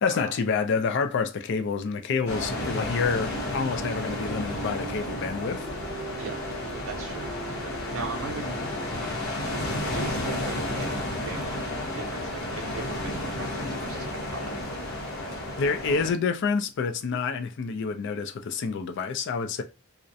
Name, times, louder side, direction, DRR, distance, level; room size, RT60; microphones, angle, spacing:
voice 1, 0.0-5.7 15.6-19.6, left 5 dB, 55° left, 0.4 m, -28 dB
sound 1, 2.1-9.2, right 4 dB, 40° right, 0.3 m, -42 dB
sound 2, 2.3-16.1, left 1 dB, 85° left, 0.8 m, -32 dB
voice 2, 6.9-8.6 8.9-9.1 9.9-11.6 11.9-14.6, right 3 dB, 75° right, 0.7 m, -39 dB
2.3 x 2.0 x 2.6 m
head